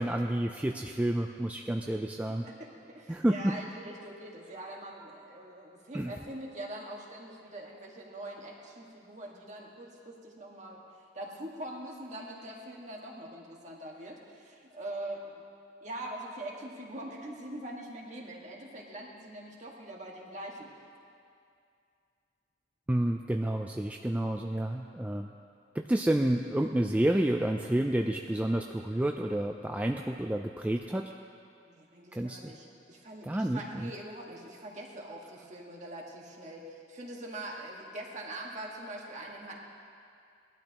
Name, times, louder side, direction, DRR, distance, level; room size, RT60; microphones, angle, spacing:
voice 1, 0.0-2.4 3.1-3.5 5.9-6.1 22.9-25.3 25.7-31.1 32.1-32.5 33.2-33.9, right 1 dB, 10° right, 3 dB, 0.3 m, -29 dB
voice 2, 2.2-10.8 11.1-15.4 15.8-20.7 31.7-39.6, right 1 dB, 40° right, -1 dB, 1.7 m, -43 dB
20.0 x 12.0 x 3.0 m, 2.5 s
head